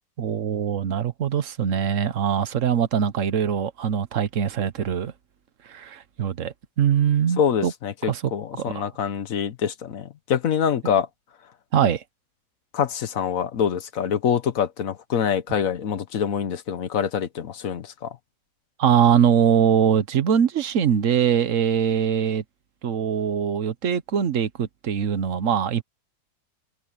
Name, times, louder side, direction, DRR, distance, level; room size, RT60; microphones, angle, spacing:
voice 1, 0.2-5.1 5.7-7.7 8.1-8.3 8.6-8.9 10.8-10.9 11.7-12.0 18.8-22.4 22.8-25.8, right 8 dB, 50° right, 1.2 m, -22 dB
voice 2, 7.4-11.1 12.7-18.2, left 8 dB, 55° left, 1.2 m, -25 dB
omnidirectional pair, 1.9 m